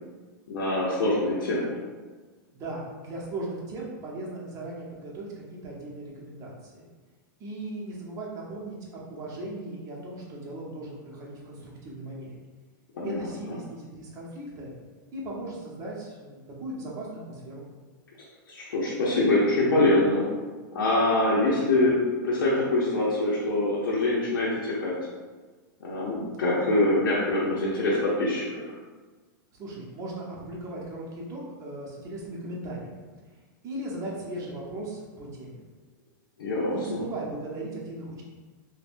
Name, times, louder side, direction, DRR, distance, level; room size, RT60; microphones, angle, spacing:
voice 1, 0.5-1.8 12.9-13.3 18.5-20.2 20.7-22.0 22.2-25.0 25.8-28.5 36.4-37.0, left 2 dB, 80° left, -6 dB, 0.7 m, -24 dB
voice 2, 2.5-6.9 7.4-12.4 13.0-14.7 15.1-17.6 29.5-33.1 33.3-35.6 36.7-38.2, right 2 dB, 30° right, -4 dB, 0.9 m, -38 dB
3.3 x 2.3 x 2.5 m, 1.3 s
hypercardioid pair, 130°, 11 cm